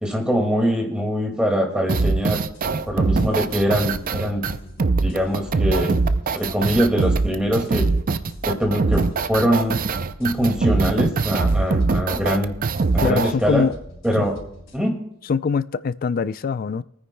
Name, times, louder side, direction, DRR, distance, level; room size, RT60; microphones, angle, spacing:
voice 1, 0.0-2.4 2.9-4.5 5.0-6.0 6.4-7.9 8.5-9.0 9.3-9.8 10.2-12.5 12.9-13.6 14.0-14.4 14.7-15.0, equal, 5° right, 2.0 m, -22 dB
sound 1, 1.9-13.3, right 3 dB, 40° right, 0.5 m, -22 dB
sound 2, 2.4-14.8, equal, 65° left, 3.7 m, -41 dB
voice 2, 13.0-13.7 14.2-14.3 15.3-16.8, left 5 dB, 45° left, 0.3 m, -23 dB
27.5 x 9.7 x 2.2 m
head